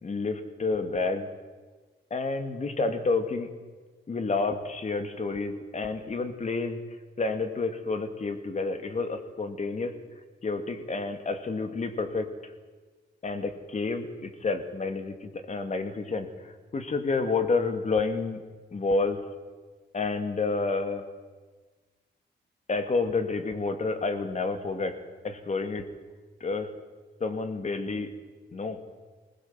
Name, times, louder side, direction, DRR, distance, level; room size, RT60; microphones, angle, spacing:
voice 1, 0.0-1.3 2.1-3.5 4.1-6.8 7.2-9.9 10.4-12.5 13.2-18.4 18.7-19.2 19.9-21.0 22.7-25.0 25.2-25.9 26.4-26.7 27.2-28.1 28.5-28.8, left 3 dB, 40° left, 8 dB, 2.3 m, -29 dB
20.5 x 20.0 x 7.6 m, 1.4 s
cardioid pair, 105°, 19 cm